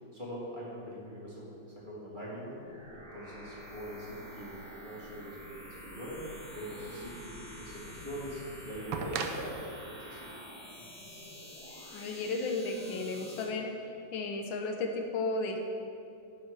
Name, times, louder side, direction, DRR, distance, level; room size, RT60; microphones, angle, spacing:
voice 1, 0.0-2.6 2.9-6.2 6.5-10.4 10.7-11.1, equal, 25° right, -6 dB, 2.2 m, -43 dB
sound 1, 2.5-13.5, left 1 dB, 55° left, 2.2 m, -48 dB
sound 2, 7.4-7.5 8.9-11.8 13.0-13.1, right 5 dB, 90° right, 1.5 m, -40 dB
voice 2, 11.9-13.9 14.1-15.6, left 3 dB, 85° left, 3 dB, 1.7 m, -34 dB
11.0 x 7.0 x 4.9 m, 2.5 s
omnidirectional pair, 2.1 m